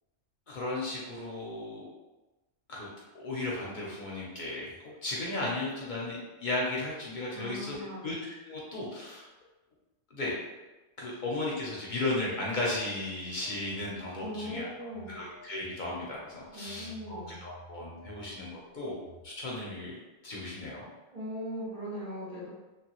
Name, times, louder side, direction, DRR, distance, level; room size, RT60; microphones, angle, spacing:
voice 1, 0.5-1.9 2.7-2.9 3.1-9.3 10.1-10.4 11.0-14.7 15.1-20.9, left 2 dB, 55° left, -4 dB, 0.5 m, -35 dB
voice 2, 7.3-8.1 11.1-11.2 14.2-15.2 16.5-17.4 21.1-22.5, equal, 30° right, -7 dB, 0.9 m, -39 dB
Telephone, 13.4-15.7 16.1-19.2, right 1 dB, 65° right, 0.4 m, -53 dB
3.0 x 2.2 x 2.9 m, 1.1 s
omnidirectional pair, 1.3 m